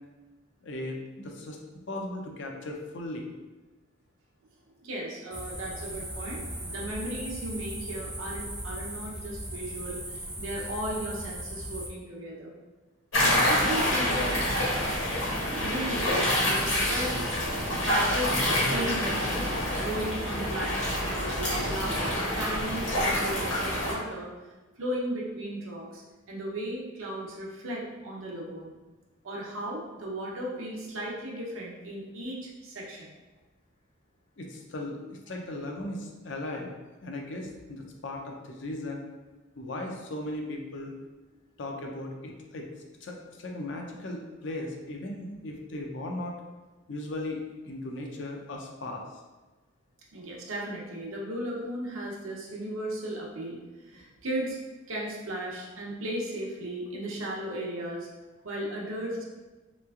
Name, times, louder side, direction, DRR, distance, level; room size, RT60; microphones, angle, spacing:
voice 1, 0.6-1.6 1.9-3.2 34.4-35.0 35.3-36.7 37.0-39.0 39.6-40.9 41.6-42.7 43.0-46.3 46.9-49.2 53.9-54.0, left 1 dB, 60° left, 1 dB, 0.5 m, -37 dB
voice 2, 4.8-12.5 13.1-14.7 15.6-17.4 17.8-19.4 19.8-24.3 24.8-26.0 26.3-28.7 29.2-33.1 50.1-53.6 53.9-54.6 54.9-58.1 58.4-59.2, right 1 dB, 90° right, -3 dB, 0.7 m, -35 dB
sound 1, 5.3-11.9, right 1 dB, 5° right, 0.4 m, -38 dB
sound 2, 13.1-23.9, left 1 dB, 90° left, 1.4 m, -27 dB
3.2 x 3.0 x 2.4 m, 1.2 s
head